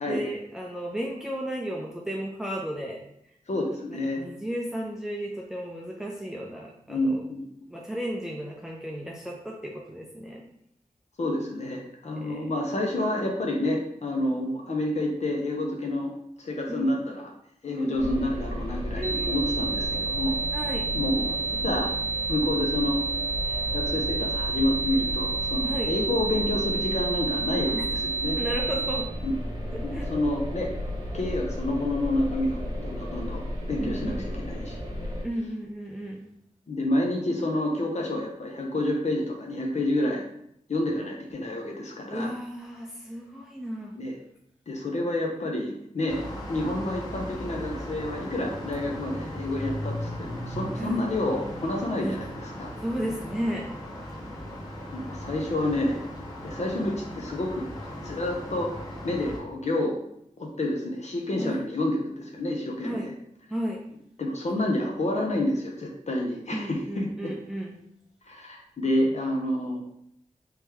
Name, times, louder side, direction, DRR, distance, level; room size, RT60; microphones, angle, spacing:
voice 1, 0.1-3.0 3.7-7.2 7.7-10.4 12.1-12.5 16.7-16.9 17.8-18.1 19.0-19.4 20.5-20.9 25.6-25.9 27.7-27.8 28.4-29.1 29.7-30.1 33.8-34.3 35.2-36.3 42.1-43.9 50.7-51.0 52.0-52.2 52.8-53.7 61.4-61.6 62.8-63.1 63.5-63.8 66.5-67.7, equal, 5° right, -1 dB, 0.5 m, -34 dB
voice 2, 3.5-4.2 6.9-7.4 11.2-16.1 16.4-17.3 17.6-20.4 20.9-21.9 22.3-23.0 23.4-28.4 29.2-29.3 29.8-30.7 31.1-33.4 33.7-34.8 36.7-40.2 40.7-42.3 44.0-44.2 44.7-46.2 46.5-52.7 54.9-56.0 56.4-57.7 58.0-58.7 59.0-60.0 60.4-63.1 64.2-67.1 68.2-69.8, left 1 dB, 55° left, 0 dB, 0.6 m, -29 dB
sound 1, 17.9-35.2, equal, 25° right, 1.0 m, -34 dB
sound 2, 19.0-29.0, right 4 dB, 90° right, 0.7 m, -30 dB
sound 3, 46.1-59.4, equal, 30° left, 1.3 m, -37 dB
3.1 x 3.0 x 3.5 m, 0.76 s
wide cardioid pair, 70°, 14 cm